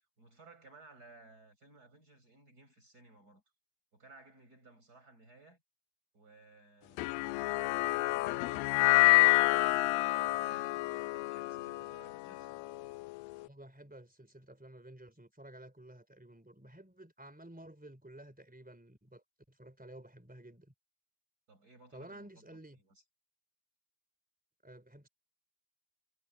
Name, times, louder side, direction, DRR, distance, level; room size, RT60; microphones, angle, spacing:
voice 1, 0.2-3.4 3.9-5.6 6.1-12.5 21.5-23.0, right 2 dB, 20° right, 7.3 m, -59 dB
sound 1, 7.0-13.4, left 19 dB, 90° left, 2.0 m, -28 dB
voice 2, 13.4-20.7 21.9-22.8 24.6-25.1, right 1 dB, ahead, 3.0 m, -53 dB
omnidirectional pair, 4.7 m